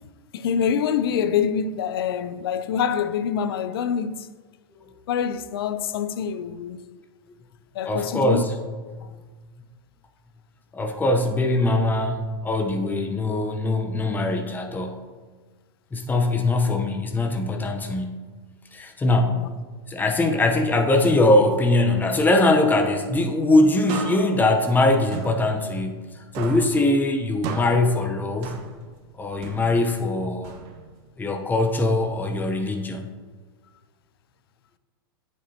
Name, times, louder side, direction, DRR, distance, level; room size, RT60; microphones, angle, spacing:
voice 1, 0.3-4.3 5.1-6.9 7.7-8.4 9.0-9.1 19.3-19.5, left 7 dB, 70° left, 0.5 m, -25 dB
voice 2, 7.9-8.5 8.9-9.1 10.7-15.0 15.9-18.2 18.7-19.5 19.9-26.0 26.4-28.6 29.2-30.5 31.2-33.1, left 2 dB, 15° left, 0.9 m, -22 dB
sound 1, 23.9-26.1 26.3-29.0 29.4-31.1, right 6 dB, 50° right, 1.0 m, -37 dB
8.3 x 8.0 x 2.9 m
hypercardioid pair, 105°, 13 cm